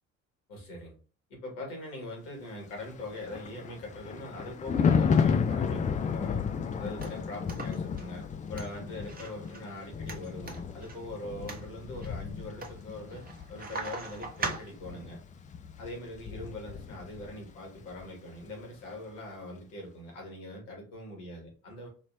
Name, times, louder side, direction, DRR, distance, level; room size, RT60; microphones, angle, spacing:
voice 1, 0.5-0.9 1.3-6.5 6.8-15.2 15.8-21.9, left 1 dB, 70° left, -1 dB, 2.1 m, -42 dB
Thunder, 2.9-17.5 17.8-18.1, left 6 dB, 20° left, 0.4 m, -32 dB
sound 1, 6.4-15.1, right 4 dB, 20° right, 1.1 m, -42 dB
4.2 x 3.0 x 2.7 m, 0.37 s
figure-of-eight pair, 50°, 40 cm